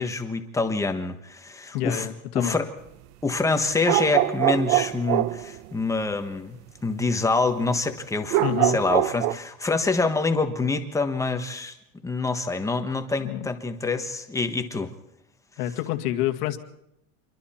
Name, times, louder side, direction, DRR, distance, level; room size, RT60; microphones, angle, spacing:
voice 1, 0.0-2.1 2.3-2.7 3.2-11.7 12.0-14.9, left 3 dB, 5° left, 6 dB, 1.3 m, -26 dB
voice 2, 1.7-2.6 8.4-8.8 13.2-13.5 15.6-16.6, left 12 dB, 90° left, 6 dB, 2.2 m, -28 dB
sound 1, 3.8-5.6 8.3-9.3, right 16 dB, 75° right, 1.0 m, -23 dB
27.5 x 23.0 x 4.4 m, 0.82 s
cardioid pair, 165°, 44 cm